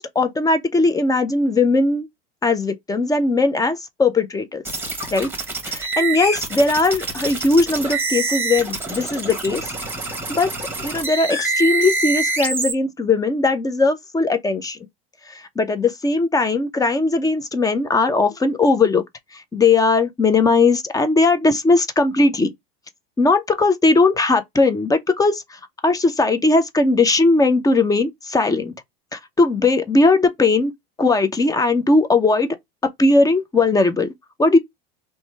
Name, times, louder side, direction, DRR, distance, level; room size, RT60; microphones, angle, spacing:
voice 1, 0.0-2.1 2.4-4.6 5.1-5.3 5.7-9.7 10.3-10.5 10.8-14.8 15.6-19.0 19.5-22.5 23.2-25.4 25.8-28.7 29.1-30.7 31.0-32.5 33.0-34.1 34.4-34.6, left 3 dB, 10° left, 0.5 m, -18 dB
sound 1, 4.6-12.7, right 3 dB, 5° right, 1.2 m, -26 dB
2.9 x 2.2 x 3.1 m
supercardioid pair, 105°, 30 cm